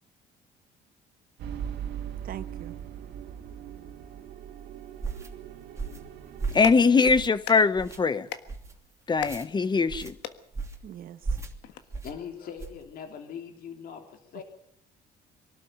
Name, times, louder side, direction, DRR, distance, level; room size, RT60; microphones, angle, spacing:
sound 1, 1.4-6.8, right 9 dB, 75° right, 2.3 m, -40 dB
voice 1, 2.2-2.8 10.8-11.2, right 11 dB, 60° right, 1.2 m, -41 dB
sound 2, 5.0-5.3 5.8-6.1 6.4-6.7 7.1-7.4 7.8-8.0 8.5-8.7 9.2-9.5 9.9-10.1 10.5-10.9 11.2-11.5 11.9-12.1 12.6-12.8, right 4 dB, 15° right, 2.9 m, -35 dB
Clapping, 6.3-11.8, left 11 dB, 90° left, 1.6 m, -43 dB
voice 2, 6.5-8.3 9.1-10.1, left 4 dB, 25° left, 1.2 m, -22 dB
voice 3, 11.7-14.4, left 7 dB, 60° left, 3.1 m, -41 dB
23.5 x 12.5 x 8.9 m
cardioid pair, 110°, 17 cm